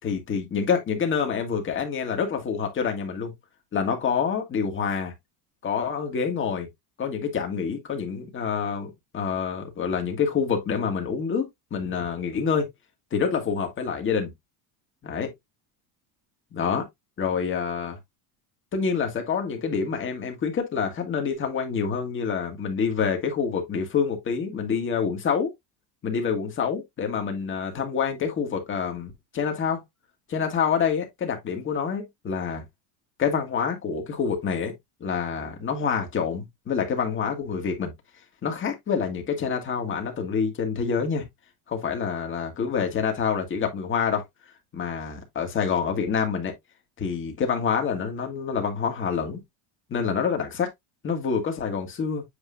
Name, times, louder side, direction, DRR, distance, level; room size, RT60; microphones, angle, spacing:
voice 1, 0.0-3.3 3.7-5.1 5.6-6.7 7.0-12.7 13.1-14.3 15.0-15.3 16.5-16.9 17.2-18.0 18.7-25.5 26.0-29.8 30.3-32.6 33.2-34.7 35.0-37.9 38.4-41.2 41.7-44.2 44.7-46.5 47.0-49.4 49.9-50.7 51.0-52.2, left 6 dB, 25° left, 1.8 m, -27 dB
8.3 x 4.6 x 2.6 m
cardioid pair, 155°, 46 cm